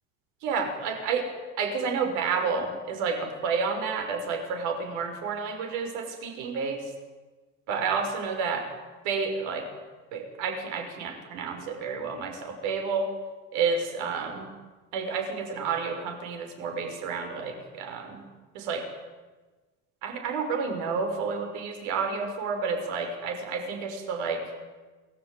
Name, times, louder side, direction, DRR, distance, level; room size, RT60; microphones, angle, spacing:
voice 1, 0.4-1.3 1.6-6.9 7.7-8.7 9.0-9.7 10.1-13.1 13.5-14.5 14.9-18.2 18.5-18.8 20.0-24.4, right 5 dB, 65° right, 5 dB, 6.2 m, -30 dB
29.0 x 20.0 x 9.5 m, 1.3 s
cardioid pair, 175°, 31 cm